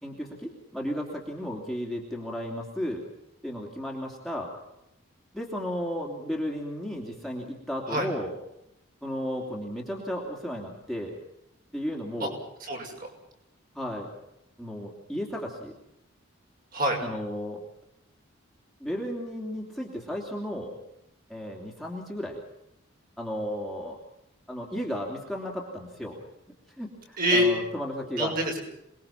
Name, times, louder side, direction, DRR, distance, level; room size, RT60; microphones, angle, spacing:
voice 1, 0.0-3.0 3.4-4.5 5.3-8.3 9.0-11.2 11.7-12.3 13.7-14.1 14.6-15.7 17.0-17.6 18.8-20.7 21.3-22.4 23.2-24.0 24.5-26.2 26.8-28.3, equal, ahead, -2 dB, 3.1 m, -34 dB
voice 2, 12.6-13.1 16.7-17.0 27.2-27.5 28.2-28.6, equal, 40° right, 1 dB, 6.3 m, -25 dB
27.5 x 21.0 x 5.9 m, 0.83 s
head